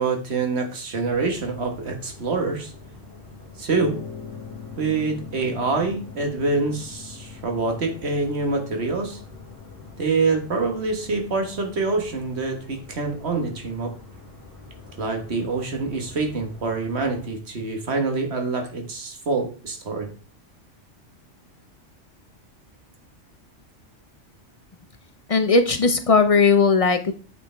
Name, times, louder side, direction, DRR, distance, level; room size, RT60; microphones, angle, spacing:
voice 1, 0.0-2.7 3.6-4.0 4.8-9.2 10.0-13.9 15.0-20.1, right 3 dB, 60° right, 4 dB, 1.6 m, -26 dB
sound 1, 1.0-17.3, left 3 dB, 15° right, 2.0 m, -45 dB
sound 2, 3.7-11.4, left 6 dB, 70° left, 1.6 m, -42 dB
voice 2, 25.3-27.1, left 4 dB, 40° left, 8 dB, 0.5 m, -18 dB
8.6 x 4.9 x 3.3 m, 0.39 s
omnidirectional pair, 1.3 m